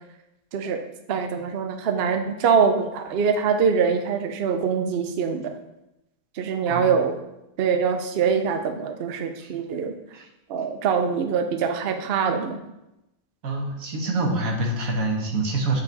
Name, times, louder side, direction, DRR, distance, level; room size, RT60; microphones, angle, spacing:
voice 1, 0.5-0.8 1.1-5.5 6.4-7.2 7.6-10.0 10.5-12.6, right 6 dB, 55° right, 6 dB, 0.8 m, -23 dB
voice 2, 13.4-15.8, right 2 dB, 85° right, 1 dB, 1.6 m, -26 dB
8.2 x 5.0 x 4.0 m, 0.90 s
omnidirectional pair, 1.4 m